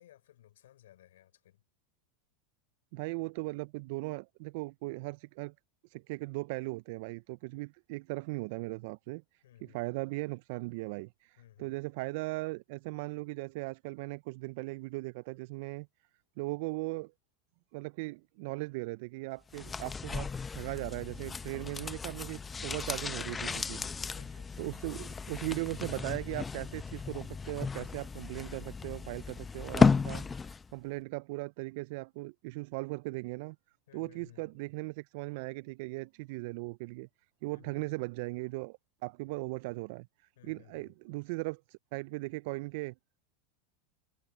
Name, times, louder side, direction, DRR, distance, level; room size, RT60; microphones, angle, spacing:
voice 1, 0.0-1.6 9.4-9.8 11.4-11.7 22.7-23.1 23.8-24.6 33.9-34.5 37.5-37.9 40.4-40.9, left 13 dB, 80° left, 5.6 m, -58 dB
voice 2, 2.9-5.5 5.8-15.9 16.4-17.1 17.7-23.8 24.6-33.6 33.9-37.1 37.4-40.1 40.4-42.9, right 24 dB, 60° right, 0.3 m, -38 dB
sound 1, 19.5-30.7 31.0-31.1, left 5 dB, 20° left, 0.7 m, -33 dB
hypercardioid pair, 105°, 0 cm